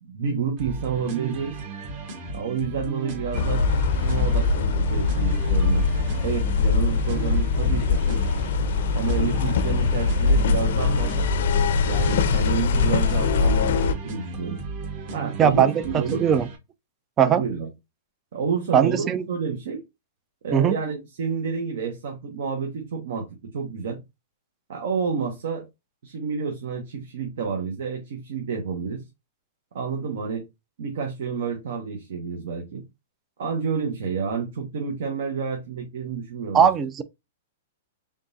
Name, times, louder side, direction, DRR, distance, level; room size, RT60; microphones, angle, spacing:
voice 1, 0.0-1.6 2.3-3.8 4.0-5.9 6.2-8.2 8.9-11.3 11.8-14.6 15.1-16.2 17.2-17.7 18.3-19.8 20.4-24.0 24.7-25.7 26.0-29.0 29.7-30.4 30.8-32.8 33.4-36.7, right 6 dB, 70° right, 1.1 m, -29 dB
sound 1, 0.6-16.6, right 4 dB, 40° right, 1.3 m, -35 dB
sound 2, 3.3-13.9, left 4 dB, 65° left, 0.5 m, -22 dB
voice 2, 15.4-16.5 17.2-17.4 18.7-19.3 20.5-20.8 36.5-37.0, right 8 dB, 20° right, 0.4 m, -19 dB
3.7 x 3.7 x 2.7 m
hypercardioid pair, 150°, 0 cm